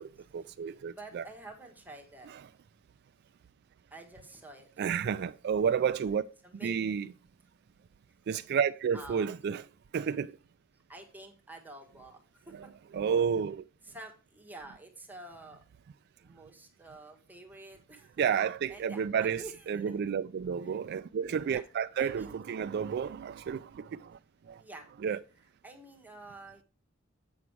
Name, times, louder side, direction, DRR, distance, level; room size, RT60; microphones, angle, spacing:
voice 1, 0.0-1.2 4.8-6.2 6.6-7.1 8.3-9.6 9.9-10.3 12.5-12.6 12.9-13.6 18.2-24.2 24.5-24.6 25.0-25.2, right 7 dB, 55° right, 0.3 m, -31 dB
voice 2, 0.8-2.3 3.9-4.7 6.4-6.8 8.9-9.3 10.9-12.7 13.8-15.6 16.2-18.2 18.7-20.0 20.6-20.8 21.5-21.6 22.0-22.4 24.6-25.2 25.6-26.6, right 2 dB, 10° right, 1.3 m, -49 dB
8.2 x 6.1 x 4.6 m
head